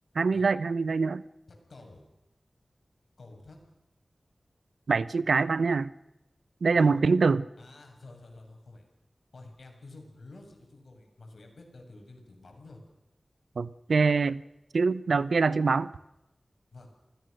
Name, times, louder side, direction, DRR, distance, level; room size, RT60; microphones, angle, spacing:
voice 1, 0.1-1.2 4.9-5.9 6.6-7.5 13.6-14.4 14.7-15.9, right 4 dB, 90° right, 17 dB, 0.9 m, -24 dB
voice 2, 1.5-2.1 3.2-3.6 6.7-7.0 7.6-8.9 9.3-12.8 16.7-16.9, left 2 dB, 80° left, 3 dB, 7.1 m, -50 dB
29.0 x 20.0 x 6.6 m, 0.91 s
wide cardioid pair, 55°, 0 cm